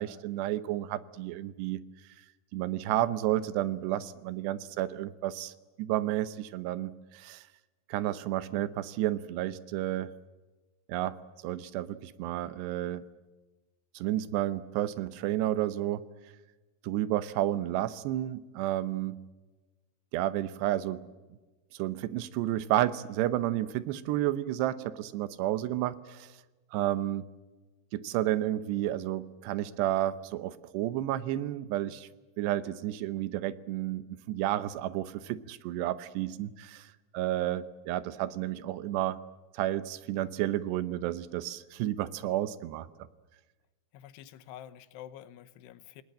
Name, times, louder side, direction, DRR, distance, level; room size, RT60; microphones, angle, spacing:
voice 1, 0.0-1.8 2.5-5.5 5.8-7.4 7.9-10.1 10.9-11.2 11.4-13.0 13.9-16.0 16.8-19.2 20.1-21.0 21.7-26.3 26.7-27.3 27.9-32.1 32.4-36.9 37.1-39.2 39.5-42.9, right 13 dB, 90° right, 15 dB, 3.1 m, -31 dB
voice 2, 43.9-46.0, left 11 dB, 85° left, 14 dB, 3.1 m, -48 dB
28.5 x 19.0 x 7.6 m, 1.2 s
omnidirectional pair, 4.7 m